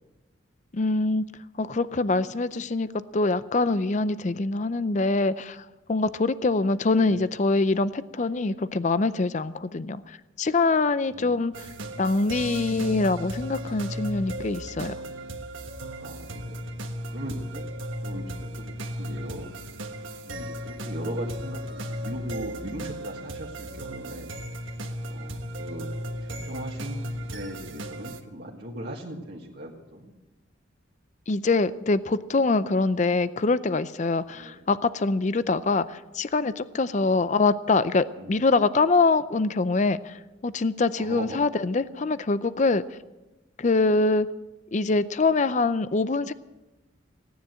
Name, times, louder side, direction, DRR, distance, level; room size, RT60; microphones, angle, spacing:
voice 1, 0.7-1.2 1.6-11.7 12.0-14.9 31.3-42.8 43.6-44.3 44.7-46.3, left 3 dB, 40° left, 15 dB, 0.5 m, -24 dB
voice 2, 11.1-11.4 16.0-16.8 17.1-17.7 18.0-19.5 20.3-24.4 25.1-25.9 26.2-30.1 34.3-34.6 36.9-37.2 38.2-38.4 41.0-41.4, right 1 dB, 55° right, -3 dB, 1.8 m, -39 dB
sound 1, 11.5-28.2, equal, 85° right, 1.5 m, -36 dB
17.0 x 10.0 x 7.6 m, 1.1 s
head